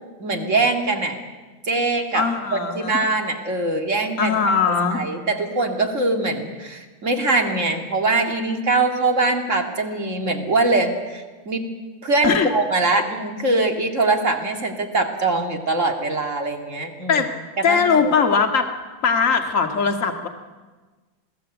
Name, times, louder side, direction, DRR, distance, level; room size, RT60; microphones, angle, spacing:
voice 1, 0.2-1.2 1.6-2.2 2.5-4.4 4.7-11.7 12.0-17.2 17.6-18.1, right 2 dB, 40° right, 4 dB, 2.6 m, -22 dB
voice 2, 2.1-3.0 4.2-5.1 12.2-12.5 12.9-13.0 17.1-17.3 17.6-18.7 19.0-20.3, left 5 dB, 40° left, 4 dB, 2.1 m, -20 dB
27.5 x 19.0 x 8.0 m, 1.3 s
omnidirectional pair, 2.1 m